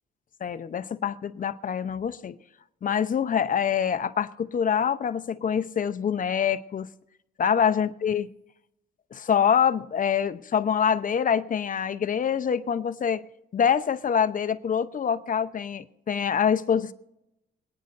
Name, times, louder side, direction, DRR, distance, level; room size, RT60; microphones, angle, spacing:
voice 1, 0.4-2.4 2.8-6.9 7.4-8.3 9.1-13.2 13.5-16.9, left 7 dB, 45° left, 0.7 m, -25 dB
26.5 x 9.6 x 2.6 m
cardioid pair, 90°, 20 cm